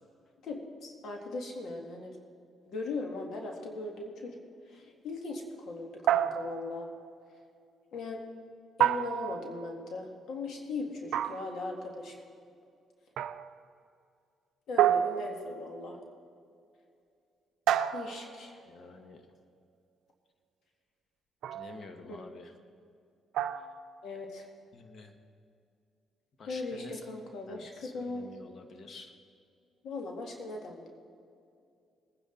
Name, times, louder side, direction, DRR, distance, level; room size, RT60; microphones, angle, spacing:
voice 1, 0.4-2.1 2.7-4.4 4.7-6.9 7.9-8.2 8.8-12.2 14.7-16.0 17.9-18.6 22.0-22.2 24.0-24.5 26.5-28.3 29.8-30.9, left 3 dB, 70° left, 2 dB, 1.9 m, -39 dB
sound 1, 6.1-6.8 8.8-9.7 11.1-11.7 13.2-13.6 14.8-15.7 17.7-18.5 21.4-21.8 23.3-23.9, right 10 dB, 80° right, 0.5 m, -29 dB
voice 2, 18.7-19.2 21.5-22.5 24.7-25.1 26.4-27.0 27.5-29.1, left 3 dB, 50° left, 5 dB, 1.4 m, -49 dB
20.5 x 10.0 x 3.9 m, 2.4 s
cardioid pair, 90°, 0 cm